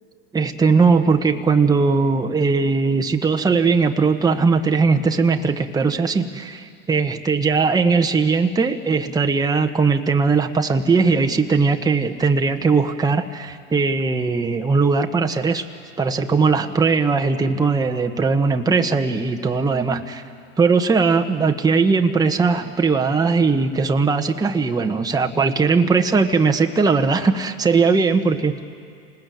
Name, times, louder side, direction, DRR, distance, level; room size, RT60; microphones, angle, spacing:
voice 1, 0.3-15.7 16.0-20.2 20.6-28.6, right 4 dB, 10° right, 4 dB, 1.2 m, -19 dB
27.5 x 19.5 x 9.3 m, 2.2 s
hypercardioid pair, 95°, 32 cm